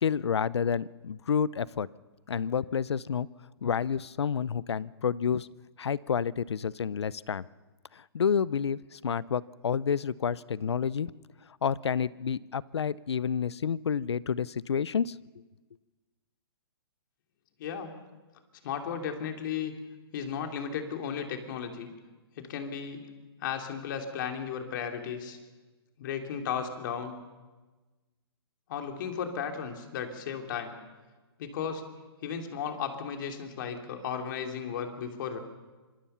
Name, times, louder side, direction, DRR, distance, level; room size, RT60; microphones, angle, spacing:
voice 1, 0.0-1.9 2.3-3.3 3.6-5.5 5.8-7.4 8.1-11.1 11.6-15.1, left 7 dB, 90° left, 21 dB, 0.6 m, -29 dB
voice 2, 17.6-17.9 18.6-19.7 20.1-21.9 22.4-23.0 23.4-25.4 26.0-27.1 28.7-30.8 31.4-31.8 32.2-35.4, left 7 dB, 50° left, 4 dB, 3.1 m, -35 dB
25.5 x 20.5 x 5.7 m, 1.2 s
hypercardioid pair, 145°, 14 cm